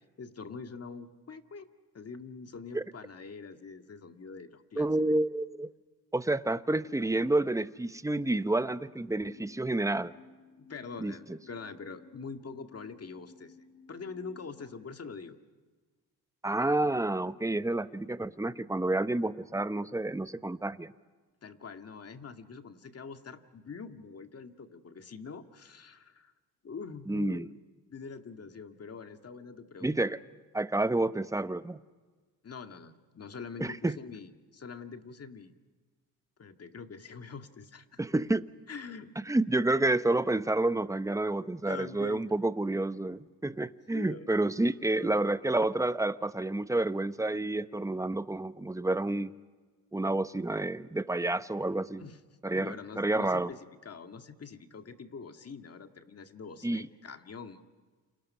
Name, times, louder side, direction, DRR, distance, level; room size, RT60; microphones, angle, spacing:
voice 1, 0.2-1.7 1.9-5.2 10.7-13.6 13.9-15.4 21.4-26.3 26.6-27.5 27.9-30.0 32.4-35.5 36.4-38.0 38.7-39.1 41.7-42.3 43.9-44.3 45.0-45.2 52.0-52.2 52.5-53.6 53.8-57.6, left 5 dB, 40° left, 7 dB, 2.0 m, -44 dB
voice 2, 4.8-5.7 6.1-10.1 11.0-11.1 16.4-20.9 27.1-27.5 29.8-30.2 30.5-31.8 33.6-34.0 38.0-38.5 39.3-49.3 49.9-52.0 52.4-53.5 56.6-56.9, right 2 dB, 10° right, 13 dB, 0.9 m, -29 dB
sound 1, 8.1-14.9, left 3 dB, 85° left, 3.5 m, -56 dB
29.0 x 27.5 x 5.6 m, 1.4 s
cardioid pair, 85°, 38 cm